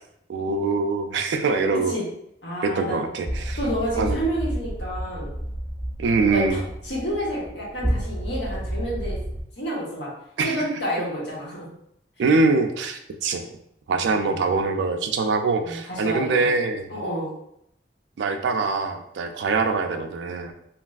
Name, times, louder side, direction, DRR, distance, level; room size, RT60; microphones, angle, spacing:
voice 1, 0.3-1.9 2.6-3.6 4.0-4.2 6.0-6.6 10.4-10.7 12.2-13.4 13.9-16.9 18.2-20.5, right 3 dB, 80° right, 6 dB, 0.3 m, -23 dB
voice 2, 2.4-3.0 3.6-5.3 6.2-9.2 9.6-10.1 10.4-11.7 13.9-14.3 15.6-16.5 16.9-17.3, equal, 80° left, -6 dB, 1.1 m, -29 dB
sound 1, 3.3-9.4, equal, ahead, 0.4 m, -30 dB
3.2 x 2.3 x 2.3 m, 0.76 s
head